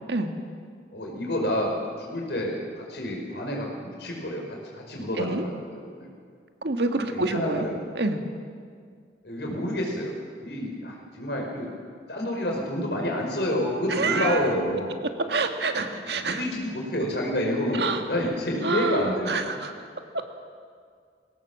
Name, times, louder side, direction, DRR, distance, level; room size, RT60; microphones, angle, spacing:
voice 1, 0.9-6.1 7.1-7.8 9.2-10.1 10.4-11.7 12.1-14.9 15.8-15.9 16.1-19.6, left 1 dB, 70° left, -1 dB, 5.2 m, -29 dB
voice 2, 6.6-7.6 8.0-8.2 13.9-14.4 15.3-16.4 17.8-18.0 18.6-19.7 20.1-20.2, right 3 dB, 75° right, 6 dB, 1.6 m, -27 dB
20.5 x 17.5 x 7.4 m, 2.1 s
head